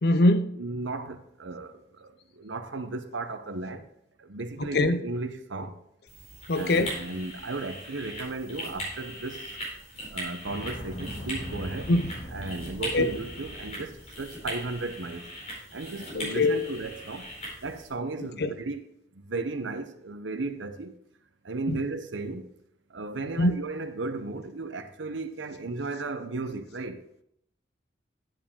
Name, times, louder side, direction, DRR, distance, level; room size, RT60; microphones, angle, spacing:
voice 1, 0.0-0.5 4.6-5.0 6.5-6.9 11.9-12.0 12.9-13.1 16.1-16.7 18.4-18.5 21.7-21.8 23.4-23.5, left 2 dB, 55° left, 0.6 m, -22 dB
voice 2, 0.6-3.9 4.2-5.8 6.5-9.6 10.1-11.9 12.3-15.3 15.7-17.3 17.6-18.8 19.1-20.9 21.4-22.5 22.9-27.0, right 3 dB, 90° right, 0.8 m, -35 dB
sound 1, 6.1-17.9, equal, 35° left, 4.3 m, -40 dB
sound 2, 10.4-14.4, equal, 80° left, 3.6 m, -40 dB
10.5 x 7.2 x 3.7 m
head